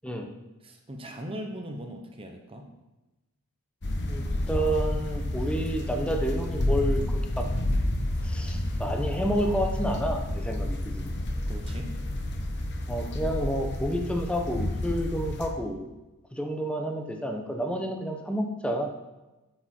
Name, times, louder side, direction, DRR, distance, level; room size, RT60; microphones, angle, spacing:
voice 1, 0.6-2.7 11.5-12.0, equal, 25° right, 3 dB, 0.9 m, -39 dB
sound 1, 3.8-15.5, left 1 dB, 50° left, 1.1 m, -30 dB
voice 2, 4.1-7.5 8.2-11.1 12.9-15.9 16.3-19.0, equal, 5° left, 2 dB, 1.0 m, -30 dB
8.7 x 6.8 x 4.5 m, 1.1 s
head